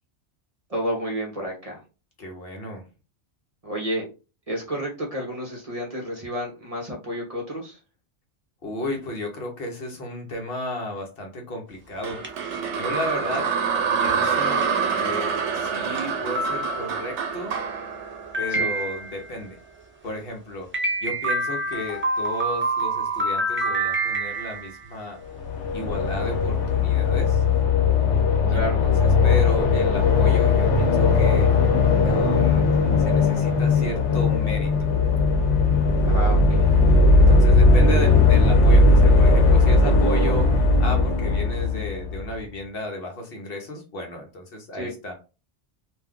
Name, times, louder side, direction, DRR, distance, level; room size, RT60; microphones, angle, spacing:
voice 1, 0.7-1.8 3.6-4.1 4.5-7.8 13.2-13.4 18.5-18.7 28.5-28.8 36.1-36.8 44.7-44.9, equal, 35° right, -1 dB, 0.7 m, -31 dB
voice 2, 2.2-2.8 8.6-12.2 12.5-13.5 13.9-17.6 18.4-19.6 20.0-20.7 21.0-25.2 25.7-27.4 28.5-31.5 32.0-32.7 33.0-34.7 37.1-45.1, left 1 dB, 60° left, 2 dB, 0.9 m, -33 dB
sound 1, 12.0-19.2, right 6 dB, 80° right, 0.9 m, -26 dB
sound 2, 12.2-12.7 13.3-13.5 14.0-14.1 14.6-14.7 15.3-15.4 16.0-16.1 16.3-17.2 18.3-19.3 20.7-24.9, right 2 dB, 15° right, 0.4 m, -27 dB
sound 3, 25.3-42.3, left 3 dB, 80° left, 1.0 m, -18 dB
2.5 x 2.2 x 3.5 m, 0.32 s
omnidirectional pair, 1.2 m